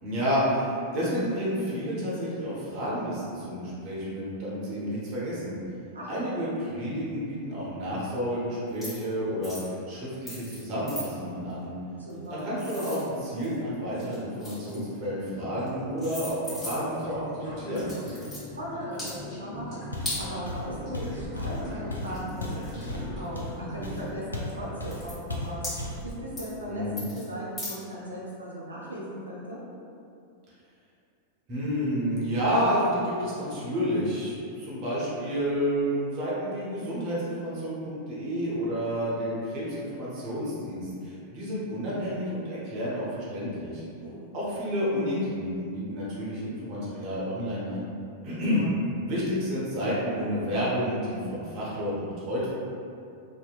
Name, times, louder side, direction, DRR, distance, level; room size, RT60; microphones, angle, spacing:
voice 1, 0.0-5.6 6.1-11.7 12.4-17.9 26.6-27.1 31.5-43.8 44.3-47.9 48.2-48.6 49.0-52.5, equal, 40° right, -8 dB, 0.7 m, -30 dB
sound 1, 8.7-9.0 9.4-9.7 10.3-10.6 10.9-11.0 12.1-13.6 13.9-14.9 15.6-15.7 16.0-17.0 17.7-18.4 18.9-19.1 20.0-20.2 21.7-21.8 22.1-23.3 24.0-24.1 24.5-24.6 24.8-25.1 25.6-26.1 26.4-26.6 27.0-27.2 27.6-27.7, left 1 dB, 15° left, 1.2 m, -38 dB
voice 2, 12.0-12.4 18.6-25.6 26.0-26.9 27.1-29.6 44.0-44.3 48.3-48.7, equal, 75° right, -5 dB, 0.5 m, -38 dB
sound 2, 15.2-24.2, left 1 dB, 40° left, 1.3 m, -42 dB
Walk footsteps, 19.9-20.2 20.4-24.5 24.8-25.0 25.3-26.0, left 2 dB, 80° left, 0.3 m, -35 dB
2.7 x 2.0 x 2.3 m, 2.5 s
figure-of-eight pair, 90°, 0 cm